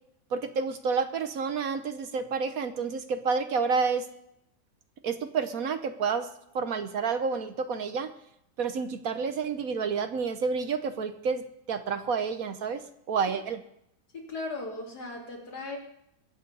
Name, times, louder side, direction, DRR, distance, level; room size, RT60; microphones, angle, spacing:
voice 1, 0.3-4.1 5.0-6.3 6.5-8.1 8.6-12.8 13.1-13.6, right 5 dB, 60° right, 10 dB, 1.3 m, -29 dB
voice 2, 14.1-15.8, left 2 dB, 70° left, 0 dB, 3.3 m, -37 dB
22.0 x 8.1 x 5.4 m, 0.77 s
omnidirectional pair, 1.8 m